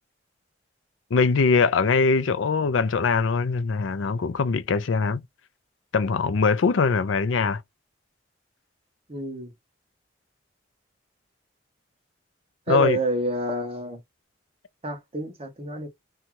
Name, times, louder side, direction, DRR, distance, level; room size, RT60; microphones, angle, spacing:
voice 1, 1.1-5.2 5.9-7.6 12.7-13.0, left 4 dB, 90° left, 0.5 m, -22 dB
voice 2, 9.1-9.5 12.7-14.0 14.8-15.9, right 2 dB, 30° right, 0.8 m, -28 dB
2.6 x 2.4 x 3.0 m
head